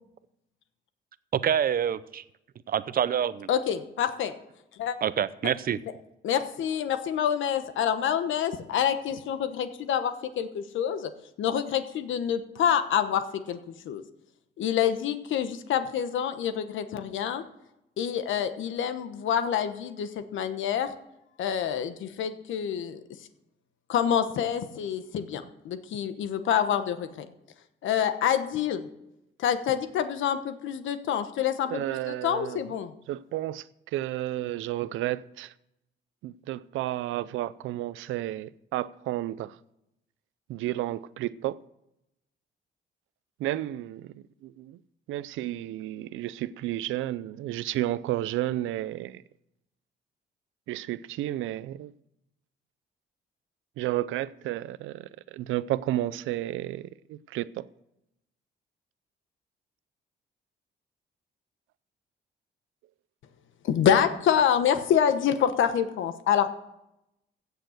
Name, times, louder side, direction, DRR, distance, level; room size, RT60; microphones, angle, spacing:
voice 1, 1.3-2.2 2.7-3.5 5.0-5.8, right 9 dB, 50° right, 0.7 m, -26 dB
voice 2, 3.5-4.3 4.8-5.0 6.2-11.1 11.4-14.0 14.6-17.4 18.0-20.9 21.4-23.0 23.9-27.3 27.8-28.9 29.4-32.9 63.6-66.5, left 9 dB, 75° left, 1.1 m, -27 dB
voice 3, 31.7-32.6 33.1-35.5 36.2-39.6 40.5-41.6 43.4-44.8 45.1-49.2 50.7-51.9 53.8-57.7, right 14 dB, 85° right, 0.5 m, -32 dB
16.0 x 6.7 x 6.4 m
cardioid pair, 90°, 20 cm